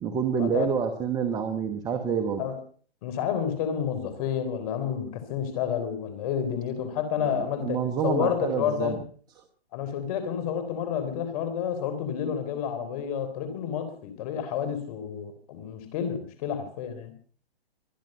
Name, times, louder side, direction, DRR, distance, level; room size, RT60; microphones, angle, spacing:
voice 1, 0.0-2.4 7.2-9.0, right 7 dB, 10° right, 1.1 m, -28 dB
voice 2, 3.0-9.0 9.7-17.1, left 8 dB, 35° left, 3.7 m, -30 dB
24.5 x 10.5 x 5.5 m
hypercardioid pair, 145°, 32 cm